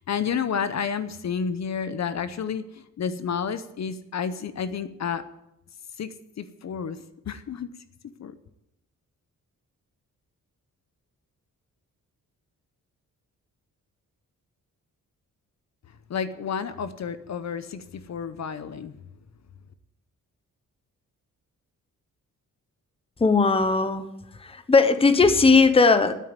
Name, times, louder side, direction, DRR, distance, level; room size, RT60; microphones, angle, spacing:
voice 1, 0.0-5.2 6.0-7.7 8.2-8.3 15.9-19.0, left 7 dB, 55° left, 12 dB, 0.8 m, -31 dB
voice 2, 23.2-24.1 24.4-26.1, left 4 dB, 15° left, 10 dB, 0.8 m, -18 dB
9.3 x 9.1 x 9.6 m, 0.86 s
wide cardioid pair, 150°, 33 cm